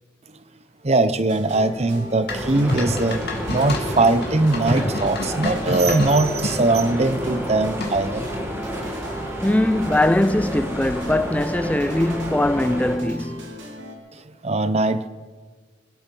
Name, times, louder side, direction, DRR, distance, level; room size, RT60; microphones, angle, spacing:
voice 1, 0.8-3.2 3.5-8.3 14.1-15.1, right 2 dB, 30° right, 0.7 m, -21 dB
sound 1, 1.3-14.0, equal, 65° right, 2.5 m, -38 dB
sound 2, 2.3-6.6 7.8-8.2, left 1 dB, 50° left, 2.3 m, -28 dB
sound 3, 2.3-13.0, equal, 10° right, 1.6 m, -30 dB
voice 2, 9.4-13.6, left 1 dB, 5° left, 0.4 m, -21 dB
24.0 x 8.6 x 5.3 m
head